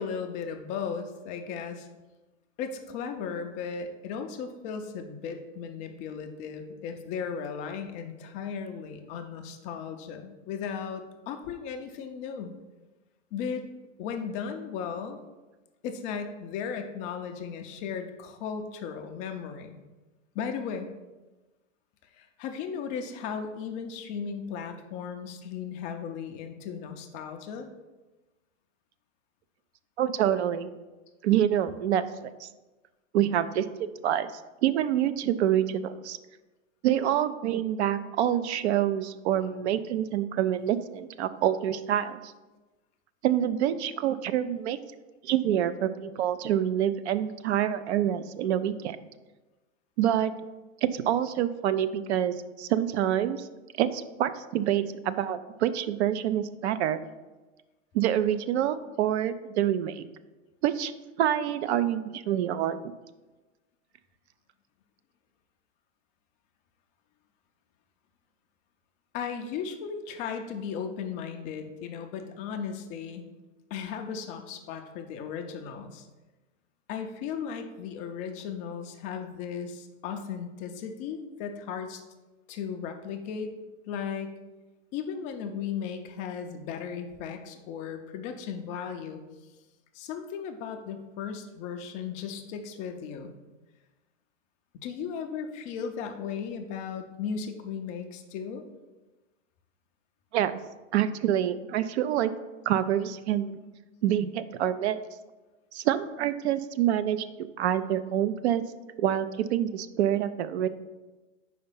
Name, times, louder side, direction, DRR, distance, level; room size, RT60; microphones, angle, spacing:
voice 1, 0.0-1.9 2.6-12.5 13.3-13.7 14.0-15.2 15.8-19.8 20.3-20.9 22.1-27.7 61.7-61.8 69.1-73.2 73.7-76.1 76.9-82.0 82.5-83.5 83.9-84.3 84.9-89.2 89.9-93.4 94.7-98.6, left 6 dB, 20° left, 5 dB, 0.3 m, -36 dB
voice 2, 30.0-30.8 31.2-32.0 32.4-32.5 33.1-34.3 34.6-36.2 36.8-42.3 43.2-44.8 45.2-49.0 50.0-50.3 50.8-53.5 53.8-57.0 57.9-60.0 60.6-60.9 61.2-62.8 100.3-100.6 100.9-102.3 102.7-103.6 104.0-105.0 105.7-107.3 107.6-108.6 109.0-110.7, right 11 dB, 60° right, 13 dB, 0.5 m, -26 dB
5.0 x 4.4 x 5.5 m, 1.2 s
hypercardioid pair, 125°, 38 cm